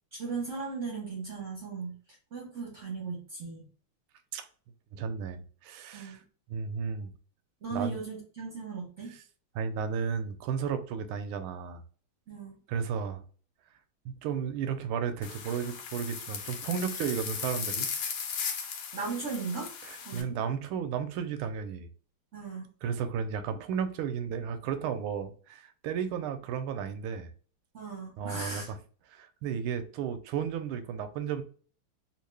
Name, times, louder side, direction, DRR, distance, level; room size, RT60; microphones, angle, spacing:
voice 1, 0.1-2.0 2.3-3.7 5.9-6.2 7.6-9.2 12.3-12.6 18.9-19.7 20.0-20.4 22.3-22.6 27.7-28.7, right 4 dB, 50° right, 0.9 m, -37 dB
voice 2, 4.9-6.2 6.5-7.1 7.7-8.0 9.5-11.8 12.7-13.2 14.0-17.9 19.8-21.9 22.8-27.3 28.2-28.8 29.1-31.4, right 7 dB, 85° right, 1.4 m, -33 dB
sound 1, 15.2-20.2, left 6 dB, 80° left, 1.6 m, -37 dB
3.6 x 2.5 x 3.2 m
omnidirectional pair, 2.3 m